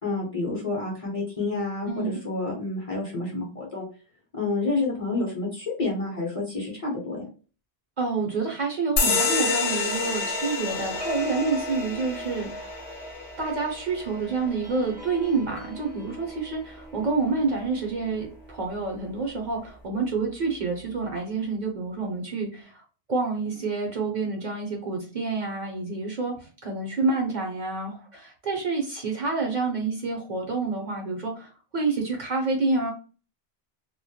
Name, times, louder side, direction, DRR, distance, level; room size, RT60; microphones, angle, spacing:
voice 1, 0.0-3.9 4.3-7.3, left 3 dB, 40° left, -2 dB, 0.6 m, -29 dB
voice 2, 1.9-2.2 8.0-12.8 13.4-22.8 23.1-32.9, right 3 dB, 55° right, 0 dB, 0.6 m, -28 dB
sound 1, 9.0-16.0, left 4 dB, 75° left, 0.8 m, -29 dB
sound 2, 10.7-19.6 20.0-20.2 20.5-20.8, equal, 5° right, 0.5 m, -41 dB
2.2 x 2.1 x 2.7 m, 0.37 s
omnidirectional pair, 1.1 m